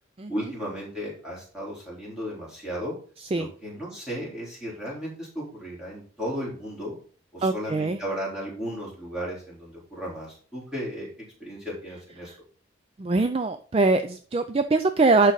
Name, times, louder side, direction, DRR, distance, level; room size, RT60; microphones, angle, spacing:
voice 1, 0.3-2.9 3.4-7.0 7.3-11.1 11.4-12.3, equal, 5° right, -6 dB, 3.6 m, -35 dB
voice 2, 7.4-8.0 13.0-15.3, right 3 dB, 30° right, 8 dB, 0.4 m, -22 dB
11.5 x 4.0 x 4.0 m, 0.42 s
head